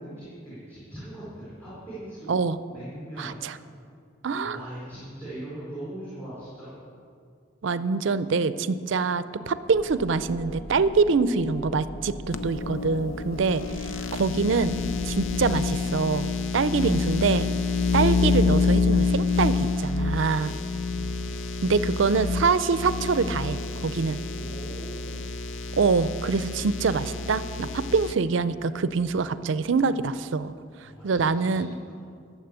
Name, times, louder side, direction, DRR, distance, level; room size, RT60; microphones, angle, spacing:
voice 1, 0.0-2.4 2.7-3.4 4.4-6.8 20.9-21.1 24.2-25.2 30.8-31.6 31.9-32.0, right 1 dB, 5° left, -10 dB, 3.9 m, -40 dB
voice 2, 3.2-3.6 4.2-4.6 7.6-14.7 15.1-17.5 17.9-20.5 21.6-24.2 25.8-30.5 30.8-31.7, right 4 dB, 70° right, 14 dB, 0.5 m, -25 dB
sound 1, 9.7-16.2, left 1 dB, 25° left, 0.8 m, -41 dB
sound 2, 12.3-28.1, left 4 dB, 80° left, 0.6 m, -28 dB
13.0 x 7.4 x 8.1 m, 2.3 s
head